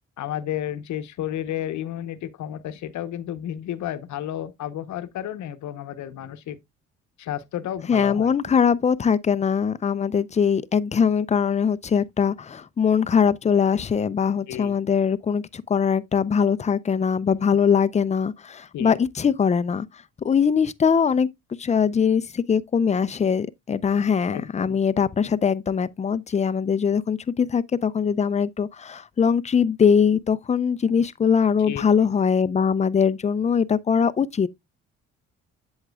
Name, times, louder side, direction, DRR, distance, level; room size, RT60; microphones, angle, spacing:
voice 1, 0.2-6.6 7.2-8.3 14.5-14.7 18.7-19.0 24.3-24.8 31.6-31.9, left 11 dB, 70° left, 0.9 m, -32 dB
voice 2, 7.9-19.9 20.2-21.3 21.6-34.5, left 6 dB, 25° left, 0.4 m, -22 dB
8.1 x 7.3 x 2.2 m
cardioid pair, 90°, 30 cm